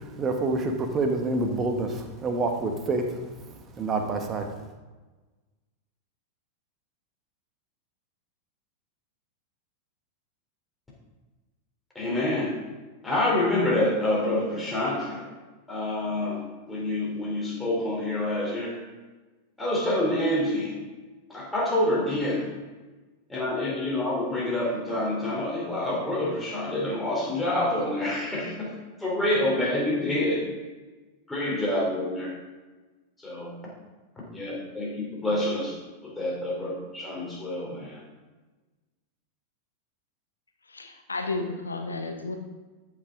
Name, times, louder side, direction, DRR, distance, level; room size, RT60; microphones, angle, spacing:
voice 1, 0.0-3.2 3.8-4.5, right 3 dB, 25° right, 4 dB, 1.2 m, -27 dB
voice 2, 11.9-12.6 13.0-15.2 15.7-16.4 16.7-18.8 19.6-20.8 21.3-22.5 23.3-30.5 31.3-32.3 33.2-33.5 34.3-35.7 36.0-38.0, left 1 dB, 10° left, -4 dB, 3.3 m, -27 dB
voice 3, 40.7-42.4, left 3 dB, 75° left, 5 dB, 1.1 m, -32 dB
13.5 x 6.0 x 3.7 m, 1.2 s
figure-of-eight pair, 90°, 0 cm